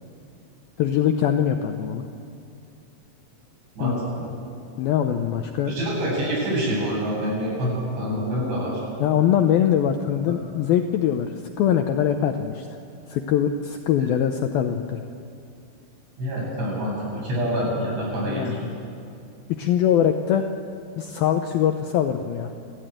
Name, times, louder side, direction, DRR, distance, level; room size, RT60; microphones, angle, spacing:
voice 1, 0.8-2.1 3.8-4.1 4.8-5.7 9.0-11.3 11.6-12.7 13.1-15.0 18.2-18.5 19.5-20.5 21.0-22.5, left 9 dB, 80° left, 6 dB, 2.2 m, -22 dB
voice 2, 3.8-4.3 5.7-8.8 10.3-10.4 16.2-18.7, equal, 75° right, -4 dB, 10.5 m, -26 dB
29.0 x 13.5 x 9.1 m, 2.6 s
omnidirectional pair, 5.2 m